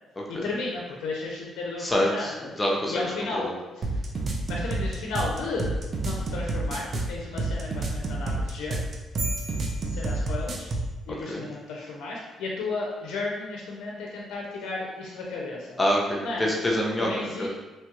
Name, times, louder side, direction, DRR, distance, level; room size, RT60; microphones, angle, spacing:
voice 1, 0.3-2.5 2.9-4.0 4.5-5.7 6.0-8.8 9.9-10.7 11.1-15.8 16.2-16.7 17.0-17.5, left 3 dB, 90° left, -2 dB, 0.4 m, -34 dB
voice 2, 1.8-3.0 3.3-3.6 11.3-11.4 15.8-17.5, left 1 dB, 20° left, -2 dB, 0.6 m, -26 dB
sound 1, 3.8-10.9, right 2 dB, 45° right, 0.4 m, -29 dB
sound 2, 9.2-10.9, right 2 dB, 85° right, 0.8 m, -38 dB
3.0 x 2.2 x 2.9 m, 1.1 s
cardioid pair, 90°, 0 cm